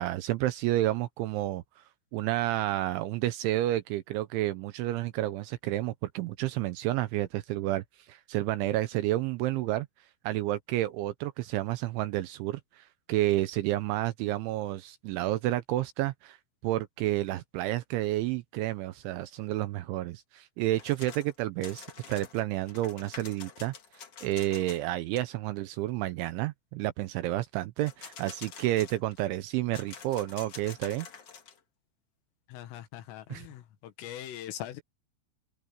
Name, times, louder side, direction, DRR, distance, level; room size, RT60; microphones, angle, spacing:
voice 1, 0.0-1.8 2.1-7.8 8.1-9.9 10.2-16.4 16.6-23.7 24.2-31.1 33.3-33.5, right 15 dB, 80° right, 2.9 m, -30 dB
sound 1, 20.7-21.3 21.6-24.9 25.1-25.2 27.8-29.2 29.7-31.6, left 6 dB, 55° left, 1.7 m, -47 dB
voice 2, 32.5-33.6 34.0-34.8, left 12 dB, 75° left, 4.1 m, -41 dB
omnidirectional pair, 6.0 m